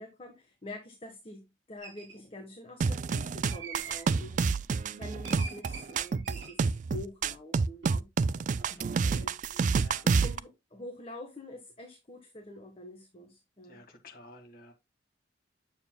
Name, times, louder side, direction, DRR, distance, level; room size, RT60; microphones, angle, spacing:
voice 1, 0.0-4.5 4.8-6.6 6.9-8.1 8.5-8.8 9.0-9.3 10.0-13.8, left 1 dB, 30° left, 1.3 m, -46 dB
sound 1, 1.8-2.2 3.5-4.1 5.2-6.6 7.8-8.0 8.3-8.7, right 4 dB, 80° right, 4.0 m, -45 dB
sound 2, 2.8-10.4, right 5 dB, 40° right, 0.3 m, -28 dB
voice 2, 8.7-9.3 9.7-10.1 13.7-14.7, left 1 dB, 50° left, 1.8 m, -51 dB
9.0 x 7.1 x 2.3 m
head